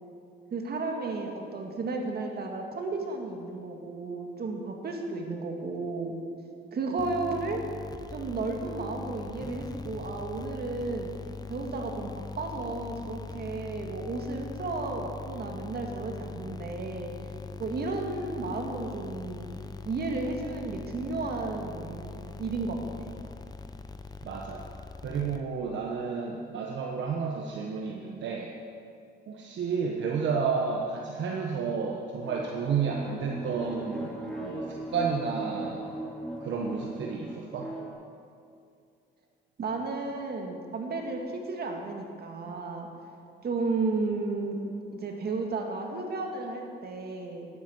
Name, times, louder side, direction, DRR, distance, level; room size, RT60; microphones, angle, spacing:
voice 1, 0.5-6.2 6.7-7.6 8.1-11.1 11.5-17.1 17.6-19.5 19.9-22.9 39.6-42.9 43.4-44.6 44.9-47.5, right 3 dB, 50° right, 2 dB, 2.2 m, -33 dB
sound 1, 7.0-25.8, left 4 dB, 20° left, 0.7 m, -42 dB
voice 2, 24.2-24.6 25.0-28.5 29.3-34.1 34.4-35.8 36.4-37.7, right 5 dB, 70° right, 0 dB, 1.2 m, -31 dB
sound 2, 32.2-37.9, right 1 dB, 5° left, 3.1 m, -38 dB
10.0 x 9.6 x 7.7 m, 2.4 s
cardioid pair, 90°, 20 cm